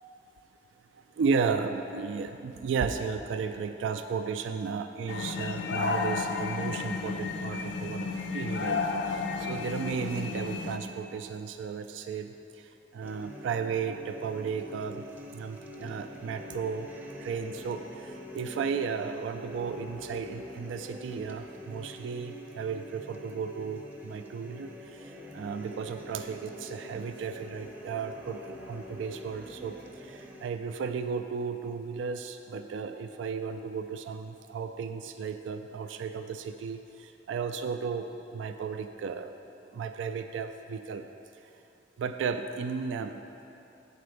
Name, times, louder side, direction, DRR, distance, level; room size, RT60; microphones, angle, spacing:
voice 1, 0.9-16.9 17.2-39.3 39.7-41.1 42.0-43.2, right 5 dB, 90° right, 8 dB, 0.3 m, -34 dB
sound 1, 5.1-10.8, left 4 dB, 75° left, 0.5 m, -32 dB
sound 2, 13.0-30.5, left 1 dB, 10° right, 0.6 m, -45 dB
8.7 x 4.3 x 6.4 m, 2.9 s
head